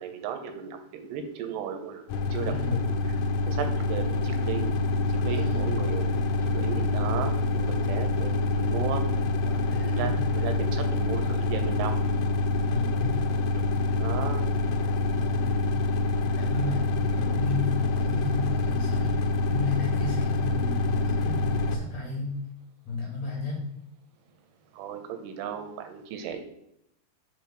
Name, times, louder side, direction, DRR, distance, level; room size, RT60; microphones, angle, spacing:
voice 1, 0.0-3.0 3.5-4.7 5.2-6.2 6.5-9.0 9.7-11.9 14.0-14.5 24.8-26.4, right 7 dB, 80° right, 6 dB, 2.6 m, -35 dB
sound 1, 2.1-21.8, left 2 dB, 80° left, 2.5 m, -26 dB
voice 2, 2.4-2.8 5.3-5.7 9.4-10.1 12.5-13.2 15.2-15.7 16.3-22.3 22.8-23.6, left 3 dB, 50° left, -3 dB, 2.2 m, -33 dB
5.7 x 4.5 x 5.7 m, 0.80 s
omnidirectional pair, 5.0 m